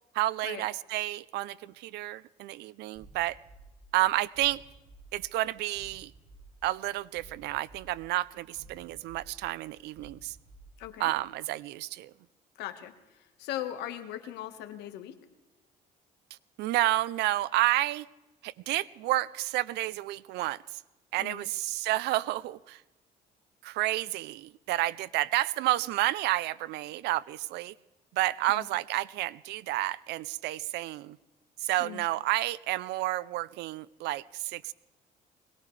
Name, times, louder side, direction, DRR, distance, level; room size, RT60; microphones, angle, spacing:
voice 1, 0.1-3.4 3.9-4.6 5.1-6.1 6.6-10.4 11.0-12.1 16.6-18.1 18.4-20.6 21.1-22.8 23.6-27.7 28.1-31.2 31.6-34.7, right 16 dB, 85° right, 19 dB, 0.5 m, -30 dB
sound 1, 2.9-11.2, right 2 dB, 60° right, 6.3 m, -54 dB
voice 2, 10.8-11.1 12.6-12.9 13.4-15.1 21.2-21.4 28.5-28.6 31.8-32.0, left 12 dB, 85° left, 8 dB, 1.5 m, -39 dB
22.5 x 19.0 x 3.3 m, 1.1 s
cardioid pair, 110°, 17 cm